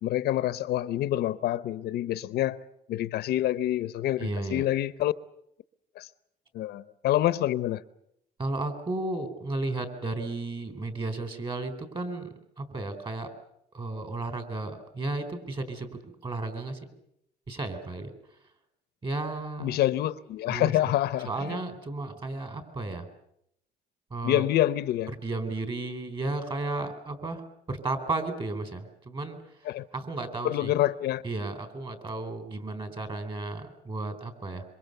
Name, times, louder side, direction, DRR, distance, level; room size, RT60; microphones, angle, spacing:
voice 1, 0.0-2.6 2.9-5.1 6.0-6.1 6.5-7.8 19.6-21.6 24.2-25.1 29.6-29.9 30.4-31.2, left 13 dB, 70° left, 0.9 m, -27 dB
voice 2, 4.2-4.7 8.4-13.3 13.7-16.9 17.5-18.1 19.0-19.8 20.5-20.7 21.2-23.1 24.1-24.4 25.2-29.4 29.9-30.7 31.2-34.6, right 2 dB, 30° right, 4.5 m, -33 dB
26.5 x 24.0 x 6.9 m
cardioid pair, 110°, 17 cm